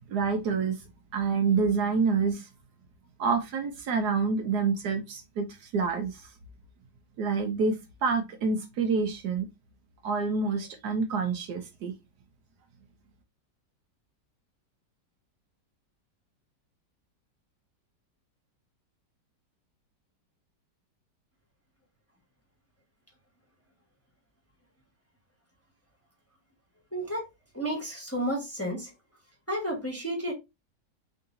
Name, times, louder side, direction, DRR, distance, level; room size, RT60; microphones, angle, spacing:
voice 1, 0.1-0.8 1.1-2.5 3.2-6.2 7.2-9.5 10.0-11.9, right 5 dB, 70° right, 1.3 m, -27 dB
voice 2, 26.9-27.3 27.5-28.9 29.5-30.3, right 1 dB, 10° left, 1.2 m, -31 dB
3.8 x 2.8 x 3.7 m
omnidirectional pair, 1.9 m